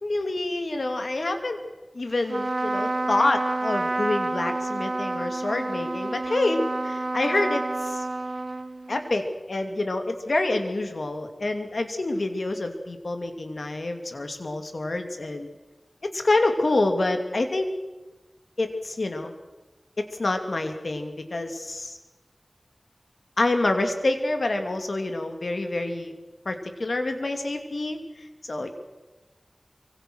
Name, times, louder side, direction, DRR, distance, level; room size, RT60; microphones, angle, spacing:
voice 1, 0.0-1.6 1.9-8.1 8.9-15.5 16.1-17.7 18.6-19.3 20.0-22.0 23.4-26.1 26.4-28.7, left 2 dB, 75° left, 6 dB, 2.7 m, -27 dB
Trumpet, 2.2-9.1, right 2 dB, 55° right, 0.8 m, -29 dB
25.0 x 24.0 x 6.4 m, 1.1 s
wide cardioid pair, 55°, 0 cm